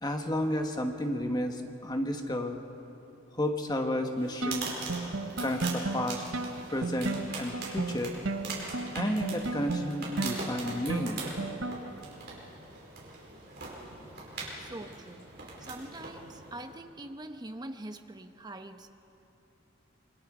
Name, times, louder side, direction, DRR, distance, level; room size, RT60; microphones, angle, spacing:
voice 1, 0.0-2.6 3.3-4.7 5.4-6.2 6.7-8.2 8.9-11.3, left 1 dB, 20° left, 4 dB, 1.4 m, -32 dB
sound 1, 4.1-16.8, right 3 dB, 55° right, 5.1 m, -42 dB
sound 2, 4.4-12.1, right 2 dB, 70° right, 1.0 m, -35 dB
voice 2, 14.6-15.3 15.6-18.9, right 1 dB, 20° right, 7 dB, 0.9 m, -43 dB
26.0 x 23.0 x 5.0 m, 2.8 s
head